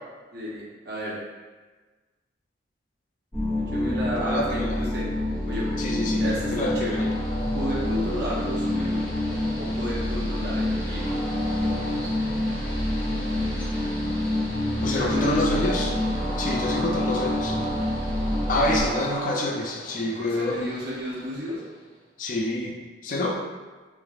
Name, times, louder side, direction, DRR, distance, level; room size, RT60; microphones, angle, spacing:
voice 1, 0.3-1.1 3.6-5.1 5.5-5.7 6.2-7.0 7.5-9.0 9.6-11.1 14.8-15.4 18.5-19.0 20.2-21.6, equal, 60° right, -6 dB, 0.8 m, -32 dB
sound 1, 3.3-18.8, left 1 dB, 5° left, 1.2 m, -27 dB
voice 2, 4.2-4.8 5.8-7.1 14.8-16.0 16.4-17.6 18.4-20.7 22.2-22.8 23.0-23.4, left 2 dB, 45° left, 0 dB, 0.3 m, -27 dB
Train, 5.1-21.9, right 1 dB, 25° left, 1.3 m, -37 dB
3.2 x 2.4 x 2.4 m, 1.3 s
head